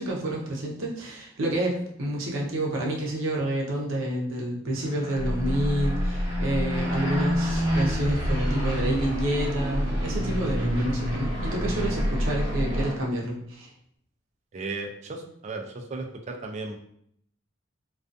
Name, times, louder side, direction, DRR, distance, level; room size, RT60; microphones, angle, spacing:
voice 1, 0.0-13.7, right 1 dB, 90° right, -2 dB, 0.6 m, -29 dB
sound 1, 4.7-12.9, equal, 20° right, 0.8 m, -30 dB
sound 2, 5.1-13.0, equal, 75° left, 0.5 m, -30 dB
voice 2, 14.5-16.8, right 3 dB, 35° right, 3 dB, 0.3 m, -35 dB
2.4 x 2.3 x 2.5 m, 0.68 s
head